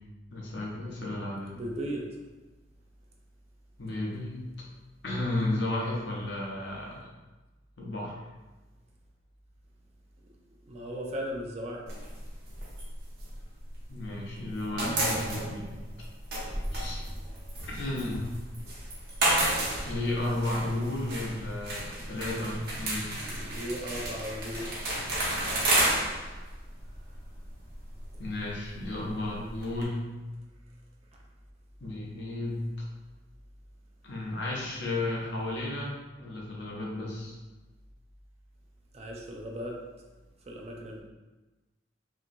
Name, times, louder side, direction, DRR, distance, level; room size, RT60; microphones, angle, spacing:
voice 1, 0.3-1.6 3.8-4.4 5.0-7.0 7.8-8.2 13.9-15.7 16.7-17.0 17.7-18.3 19.8-23.2 28.2-30.2 31.8-32.7 34.0-37.4, left 2 dB, 65° left, -3 dB, 0.7 m, -33 dB
voice 2, 1.5-2.1 10.7-11.9 23.2-24.7 38.9-39.8 40.5-41.0, equal, 35° right, -1 dB, 0.4 m, -36 dB
sound 1, 11.9-14.1 14.4-29.8, right 1 dB, 55° right, 0.8 m, -32 dB
2.9 x 2.6 x 2.5 m, 1.2 s
head